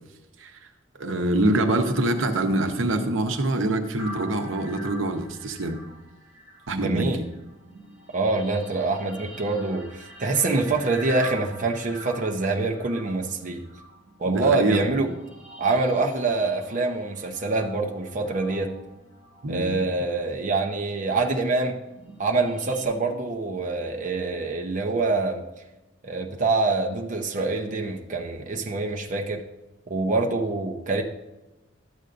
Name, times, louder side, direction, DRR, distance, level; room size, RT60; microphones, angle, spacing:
voice 1, 0.9-5.8 6.7-7.2 14.2-15.0 19.4-19.8, right 1 dB, 80° right, 5 dB, 0.8 m, -25 dB
sound 1, 4.0-20.5 21.1-22.8, right 1 dB, 5° right, 2.7 m, -45 dB
voice 2, 6.7-7.2 8.1-13.6 14.2-15.1 15.6-18.7 19.5-21.8 22.2-25.4 26.0-29.4 29.9-31.0, right 3 dB, 40° right, 1 dB, 0.7 m, -25 dB
12.0 x 8.0 x 2.5 m, 1.0 s
head